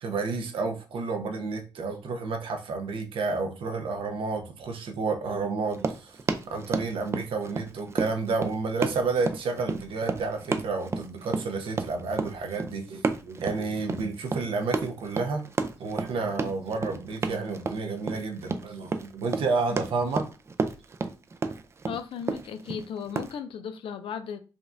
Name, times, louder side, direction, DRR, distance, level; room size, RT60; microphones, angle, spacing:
voice 1, 0.0-6.2 6.4-15.5 15.8-20.3, right 4 dB, 85° right, 0.7 m, -30 dB
Run, 5.7-23.3, right 4 dB, 30° right, 0.3 m, -31 dB
voice 2, 21.8-24.4, left 7 dB, 80° left, 0.5 m, -36 dB
5.0 x 2.3 x 2.5 m
wide cardioid pair, 135°, 9 cm